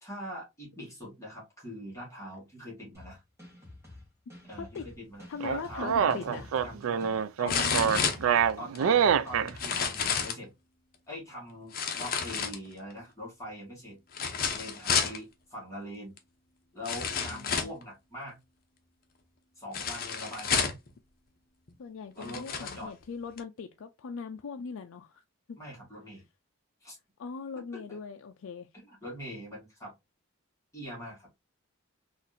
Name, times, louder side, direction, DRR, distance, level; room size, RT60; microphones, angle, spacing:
voice 1, 0.0-3.2 4.5-10.5 11.1-14.0 14.5-16.1 16.7-18.4 19.6-20.7 22.1-22.9 25.6-26.2 26.8-27.0 27.6-28.0 28.7-29.9 30.7-31.3, equal, 15° left, 1.7 m, -43 dB
sound 1, 2.9-10.2, left 1 dB, 15° right, 1.2 m, -50 dB
voice 2, 4.6-4.9 5.3-6.5 7.4-8.2 17.3-17.7 21.8-25.2 27.2-28.7, left 5 dB, 75° left, 0.4 m, -40 dB
sound 2, 5.4-9.5, right 7 dB, 80° right, 0.3 m, -25 dB
sound 3, 6.1-6.2 7.5-8.8 9.5-10.4 11.7-12.9 14.1-15.2 16.2-16.3 16.9-17.8 19.7-20.9 21.7-21.8 22.2-22.8 23.4-23.5, left 6 dB, 45° left, 0.7 m, -30 dB
4.1 x 2.5 x 2.6 m
head